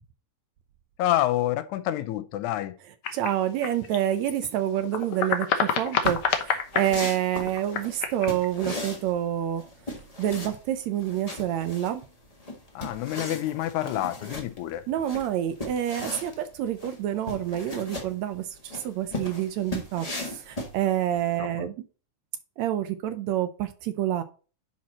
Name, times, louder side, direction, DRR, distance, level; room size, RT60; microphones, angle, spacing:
voice 1, 1.0-2.8 12.8-14.8 21.4-21.7, left 13 dB, 80° left, 2.0 m, -28 dB
sound 1, 3.0-4.5 4.8-7.0 7.3-8.5, left 7 dB, 65° left, 1.5 m, -28 dB
voice 2, 3.1-9.6 10.2-12.0 14.9-21.7 22.6-24.2, right 11 dB, 75° right, 1.8 m, -28 dB
sound 2, 6.0-21.2, left 2 dB, 30° left, 0.7 m, -38 dB
10.5 x 4.3 x 4.1 m
omnidirectional pair, 3.5 m